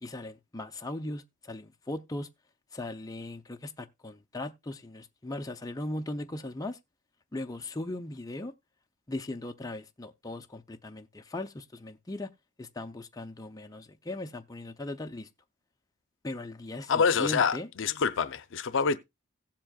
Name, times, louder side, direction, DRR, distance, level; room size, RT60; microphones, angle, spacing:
voice 1, 0.0-2.3 2.7-6.8 7.3-8.5 9.1-12.3 12.6-15.3 16.2-17.7 18.9-19.0, left 1 dB, 20° left, 0.6 m, -38 dB
voice 2, 16.9-19.0, left 5 dB, 65° left, 0.6 m, -26 dB
16.5 x 7.5 x 2.3 m
head